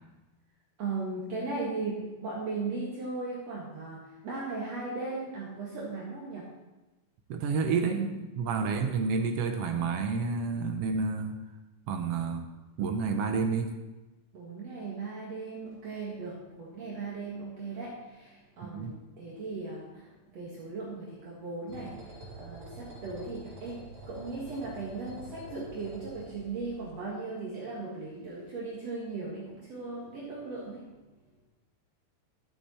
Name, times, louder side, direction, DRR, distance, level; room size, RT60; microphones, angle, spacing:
voice 1, 0.8-6.5 14.3-31.0, right 3 dB, 55° right, -5 dB, 2.8 m, -37 dB
voice 2, 7.3-11.4 11.9-12.4 12.8-13.7 18.6-18.9, right 5 dB, 70° right, 5 dB, 1.5 m, -29 dB
sound 1, 21.7-26.9, right 2 dB, 30° right, 5.4 m, -47 dB
13.0 x 8.2 x 4.3 m, 1.1 s
omnidirectional pair, 3.6 m